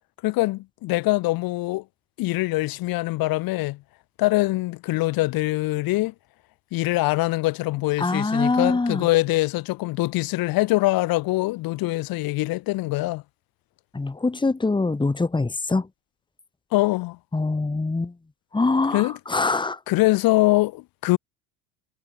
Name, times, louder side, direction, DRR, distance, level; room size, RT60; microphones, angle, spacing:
voice 1, 0.2-1.8 2.2-3.8 4.2-6.1 6.7-13.2 16.7-17.2 18.9-19.2 19.9-21.2, left 19 dB, 60° left, 3.1 m, -23 dB
voice 2, 8.0-9.1 13.9-15.8 17.3-18.1 18.5-19.8, left 3 dB, 10° left, 2.8 m, -23 dB
supercardioid pair, 100°, 40 cm